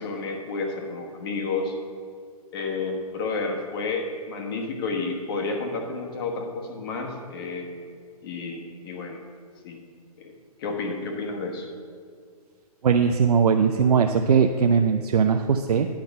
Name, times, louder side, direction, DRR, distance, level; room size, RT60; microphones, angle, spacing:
voice 1, 0.0-1.7 2.5-7.7 8.2-9.2 9.6-9.8 10.2-10.3 10.6-11.7, left 3 dB, 35° left, 3 dB, 1.3 m, -31 dB
voice 2, 12.8-15.9, right 6 dB, 80° right, 6 dB, 0.6 m, -20 dB
10.5 x 5.9 x 5.3 m, 2.1 s
hypercardioid pair, 155°, 20 cm